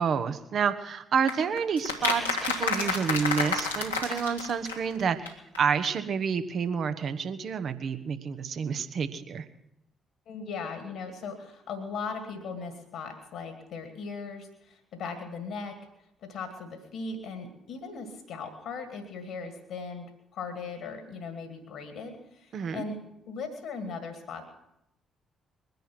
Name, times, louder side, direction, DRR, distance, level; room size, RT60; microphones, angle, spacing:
voice 1, 0.0-9.4 22.5-22.8, right 6 dB, 50° right, 10 dB, 1.1 m, -29 dB
sound 1, 1.3-5.0 5.3-5.4 5.5-5.6 5.8-5.9, left 4 dB, 90° left, 1.4 m, -30 dB
voice 2, 10.3-15.8 16.2-24.5, left 4 dB, 65° left, 7 dB, 1.9 m, -38 dB
21.0 x 10.5 x 6.0 m, 0.84 s
figure-of-eight pair, 40°, 0 cm